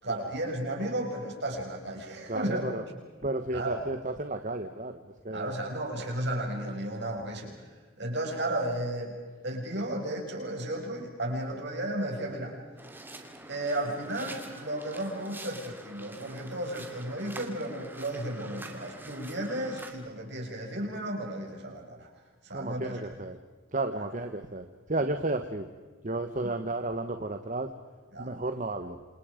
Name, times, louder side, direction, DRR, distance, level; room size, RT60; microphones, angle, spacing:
voice 1, 0.0-2.7 3.5-3.9 5.3-7.5 8.0-9.1 9.4-12.6 13.5-22.1 22.4-23.0 23.9-24.0 26.4-26.5 28.1-28.3, right 1 dB, 55° right, 1 dB, 6.7 m, -34 dB
voice 2, 2.3-2.8 3.2-5.5 22.5-23.4 23.7-25.7 26.0-27.7 28.2-29.0, right 2 dB, 40° right, 7 dB, 1.2 m, -33 dB
sound 1, 12.8-19.9, right 2 dB, 10° right, 2.7 m, -46 dB
29.0 x 27.5 x 5.1 m, 1.4 s
head